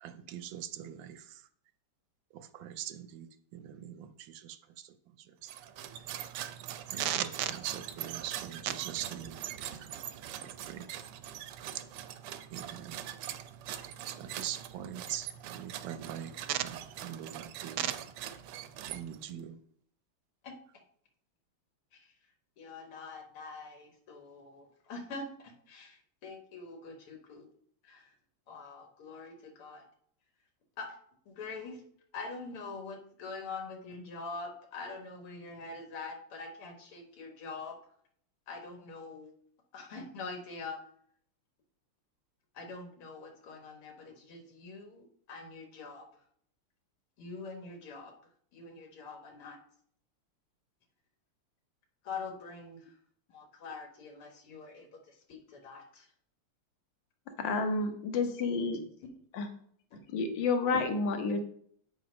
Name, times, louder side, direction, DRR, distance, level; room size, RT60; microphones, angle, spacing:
voice 1, 0.0-1.2 2.3-4.6 5.4-5.5 6.9-9.4 10.4-10.9 12.5-13.0 14.1-17.9 18.9-19.6, right 11 dB, 70° right, 11 dB, 1.2 m, -39 dB
sound 1, 5.4-19.4, right 11 dB, 90° right, 1.5 m, -43 dB
voice 2, 22.6-27.5 27.8-28.1 28.5-29.8 30.8-31.0 31.3-31.8 32.1-37.8 38.5-39.3 39.7-40.8 42.5-46.2 47.2-48.1 48.5-49.6 52.0-53.0 53.3-56.1 59.9-60.0 60.7-60.8, left 4 dB, 80° left, 3 dB, 2.2 m, -44 dB
voice 3, 57.4-58.8 59.3-59.5 60.1-61.4, left 4 dB, 60° left, 6 dB, 1.6 m, -30 dB
8.2 x 4.9 x 5.2 m, 0.64 s
omnidirectional pair, 2.4 m